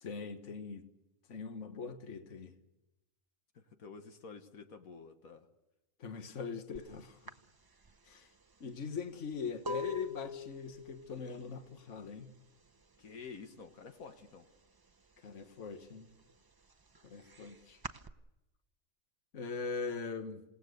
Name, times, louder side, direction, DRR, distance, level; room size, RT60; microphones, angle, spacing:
voice 1, 0.0-0.9 1.3-2.5 6.0-7.3 8.0-8.3 8.6-12.3 15.2-16.1 17.0-17.8 19.3-20.4, left 5 dB, 60° left, 1.7 m, -41 dB
voice 2, 3.5-5.5 13.0-14.5, left 5 dB, 80° left, 1.8 m, -50 dB
sound 1, 6.8-6.9 7.3-13.0 13.2-13.7 14.0-15.1 15.5-18.1, left 3 dB, 25° right, 0.6 m, -44 dB
28.0 x 18.0 x 6.7 m
omnidirectional pair, 1.5 m